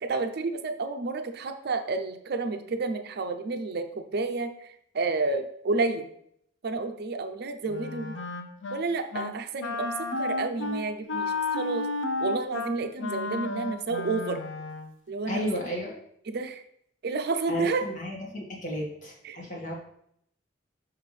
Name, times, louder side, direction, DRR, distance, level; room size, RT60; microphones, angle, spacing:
voice 1, 0.0-6.1 6.6-8.2 8.7-11.9 12.2-14.4 15.1-15.5 16.3-16.6 17.0-17.8 19.2-19.4, right 3 dB, 60° right, 7 dB, 0.5 m, -30 dB
Wind instrument woodwind instrument, 7.7-8.8 9.1-9.4 9.6-14.9, left 3 dB, 85° left, 0.6 m, -32 dB
voice 2, 15.3-15.9 17.5-19.7, equal, 45° left, -2 dB, 1.8 m, -33 dB
5.9 x 5.7 x 3.2 m, 0.71 s
head